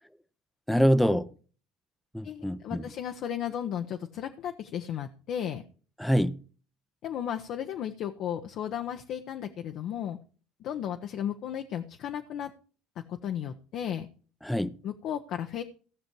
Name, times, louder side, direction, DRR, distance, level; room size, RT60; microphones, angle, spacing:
voice 1, 0.7-1.3 2.1-2.8 6.0-6.4 14.4-14.8, equal, 5° left, 0.7 m, -25 dB
voice 2, 2.2-5.6 7.0-10.2 10.6-12.5 13.1-14.1 14.8-15.6, left 9 dB, 55° left, 0.8 m, -34 dB
16.5 x 6.4 x 4.6 m
hypercardioid pair, 75°, 0 cm